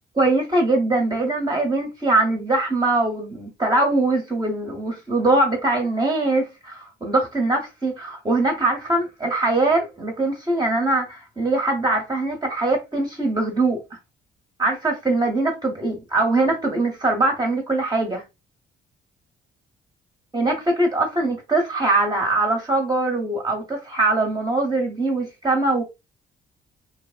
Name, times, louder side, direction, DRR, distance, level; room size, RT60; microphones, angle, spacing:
voice 1, 0.2-13.8 14.6-18.2 20.3-25.8, right 2 dB, 20° right, 0.8 m, -22 dB
2.8 x 2.0 x 2.3 m
cardioid pair, 90°, 20 cm